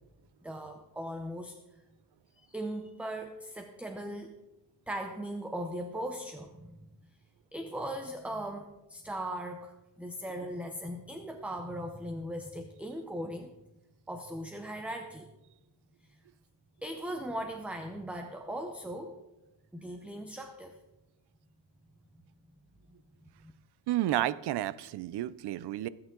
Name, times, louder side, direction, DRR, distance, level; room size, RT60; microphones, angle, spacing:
voice 1, 0.4-1.6 2.4-4.3 4.9-6.9 7.5-13.5 14.1-15.3 16.8-19.2 19.7-20.8 22.9-23.0 23.4-23.5, right 1 dB, 5° right, 5 dB, 0.7 m, -39 dB
voice 2, 23.9-25.9, right 14 dB, 60° right, 18 dB, 0.5 m, -31 dB
20.5 x 8.7 x 3.8 m, 0.99 s
cardioid pair, 175°, 45 cm